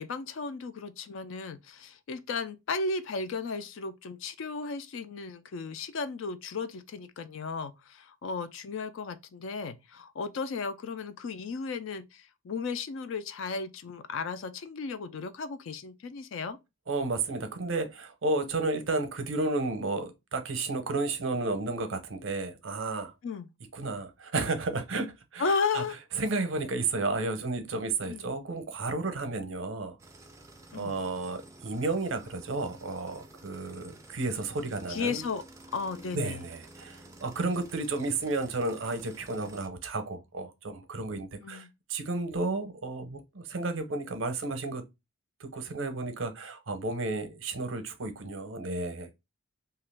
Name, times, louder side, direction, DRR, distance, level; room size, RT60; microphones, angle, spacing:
voice 1, 0.0-16.6 23.2-23.5 25.4-26.0 28.1-28.2 30.7-30.9 34.9-35.4 35.7-36.4 41.4-41.7, left 4 dB, 65° left, 0.4 m, -34 dB
voice 2, 16.9-23.1 23.7-25.8 26.2-30.0 30.7-35.2 36.1-44.8 45.4-49.1, right 3 dB, 65° right, 0.6 m, -32 dB
sound 1, 30.0-39.7, right 2 dB, 15° right, 0.4 m, -52 dB
2.9 x 2.3 x 3.3 m
head